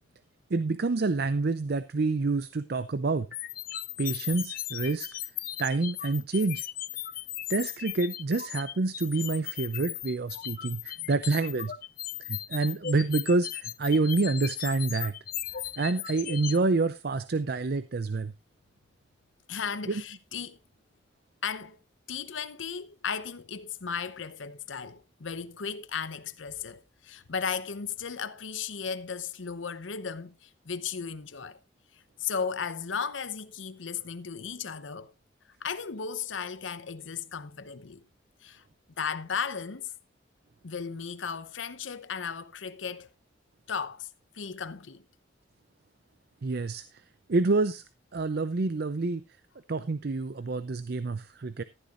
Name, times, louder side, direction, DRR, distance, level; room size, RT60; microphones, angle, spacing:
voice 1, 0.5-3.3 4.0-5.1 5.6-6.6 7.5-11.7 12.2-15.1 15.8-18.3 19.9-20.0 46.4-46.8 47.3-47.8 48.1-49.2 49.7-51.6, right 3 dB, 55° right, 0.5 m, -27 dB
sound 1, 3.3-16.6, left 12 dB, 50° left, 0.6 m, -37 dB
voice 2, 19.5-20.6 21.4-21.8 22.1-31.6 32.2-35.1 35.6-38.0 38.4-38.6 39.0-39.9 40.6-43.1 43.7-44.1 44.3-45.0, left 6 dB, 85° left, 0.8 m, -35 dB
14.5 x 11.5 x 2.5 m
head